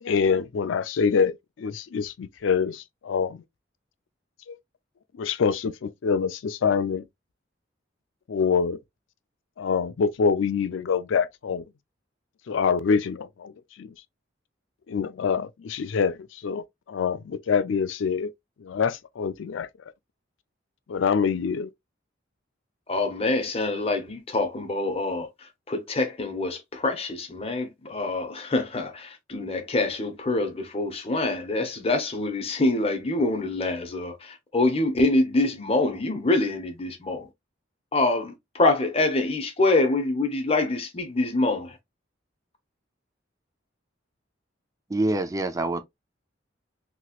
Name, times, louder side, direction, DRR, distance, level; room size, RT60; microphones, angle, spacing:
voice 1, 0.0-3.4 4.5-4.6 5.2-7.1 8.3-8.8 9.6-11.6 12.5-13.5 13.8-13.9 14.9-18.3 18.6-19.7 20.9-21.7, left 6 dB, 75° left, 0.4 m, -25 dB
voice 2, 22.9-25.3 25.7-37.3 37.9-41.7, left 2 dB, 30° left, 0.8 m, -25 dB
voice 3, 44.9-45.8, right 2 dB, 20° right, 0.4 m, -25 dB
2.9 x 2.9 x 2.4 m
head